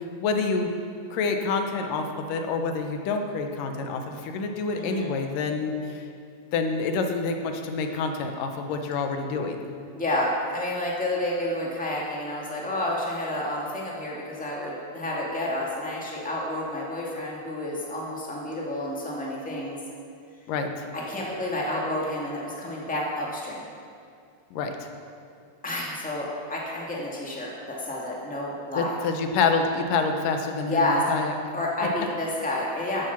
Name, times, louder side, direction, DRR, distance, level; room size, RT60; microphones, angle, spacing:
voice 1, 0.2-0.7 1.1-6.0 6.5-9.7 20.5-20.9 24.5-24.9 28.8-31.4, left 4 dB, 75° left, 5 dB, 2.5 m, -27 dB
voice 2, 4.7-5.1 9.9-19.8 20.9-23.6 25.6-28.9 30.7-31.0 31.5-33.1, left 1 dB, 5° left, -4 dB, 1.1 m, -30 dB
13.0 x 9.6 x 6.0 m, 2.3 s
omnidirectional pair, 4.0 m